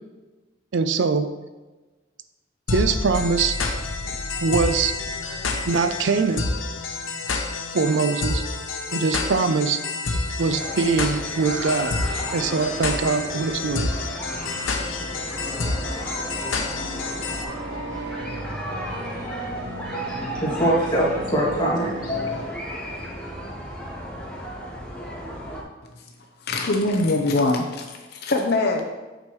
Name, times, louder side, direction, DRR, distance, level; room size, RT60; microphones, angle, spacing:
voice 1, 0.7-1.3 2.7-3.6 4.4-4.9 5.7-6.5 7.7-8.4 8.9-9.8 10.4-11.9 12.3-13.9, right 4 dB, 70° right, 10 dB, 0.5 m, -22 dB
sound 1, 2.7-17.4, left 3 dB, 85° left, 0.9 m, -28 dB
sound 2, 10.4-25.6, equal, 5° left, 1.1 m, -35 dB
sound 3, 15.4-22.4, right 1 dB, 55° right, 2.4 m, -36 dB
voice 2, 19.9-22.4, right 1 dB, 25° left, -6 dB, 2.1 m, -23 dB
voice 3, 26.4-28.8, left 2 dB, 55° left, 3 dB, 0.6 m, -23 dB
8.7 x 6.2 x 3.1 m, 1.2 s
head